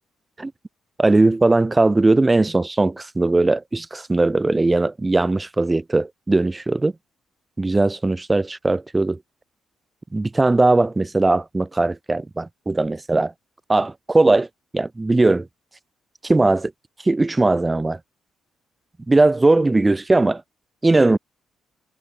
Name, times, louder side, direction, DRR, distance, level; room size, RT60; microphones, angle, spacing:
voice 1, 1.0-6.9 7.6-9.2 10.1-13.3 13.7-14.5 14.7-15.5 16.2-16.7 17.0-18.0 19.1-20.4 20.8-21.2, right 2 dB, 15° right, 5.2 m, -19 dB
cardioid pair, 130°, 0 cm